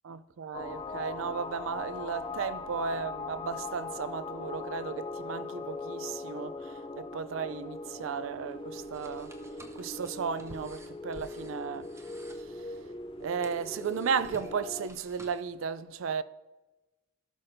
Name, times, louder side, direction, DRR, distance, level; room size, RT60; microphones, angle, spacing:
voice 1, 0.0-9.3 9.8-11.9 12.3-12.9 13.2-16.2, right 6 dB, 75° right, 0.4 m, -35 dB
sound 1, 0.5-14.9, left 3 dB, 25° left, 0.4 m, -40 dB
sound 2, 8.7-15.4, right 1 dB, 15° right, 0.7 m, -53 dB
16.5 x 6.0 x 2.6 m
head